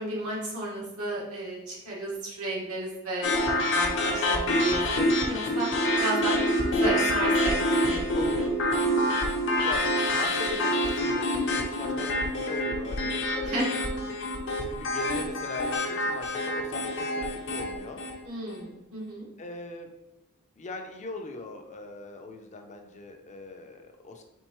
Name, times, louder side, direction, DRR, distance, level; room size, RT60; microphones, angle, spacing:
voice 1, 0.0-5.7 6.0-7.6 7.8-8.5 13.4-13.7 18.2-19.3, right 1 dB, 90° right, -4 dB, 1.5 m, -33 dB
sound 1, 3.2-18.2, left 1 dB, 60° left, 0.8 m, -27 dB
voice 2, 9.6-13.8 14.6-18.0 19.4-19.9 20.6-24.2, left 3 dB, 35° left, 4 dB, 0.5 m, -40 dB
4.4 x 3.7 x 3.0 m, 0.93 s
head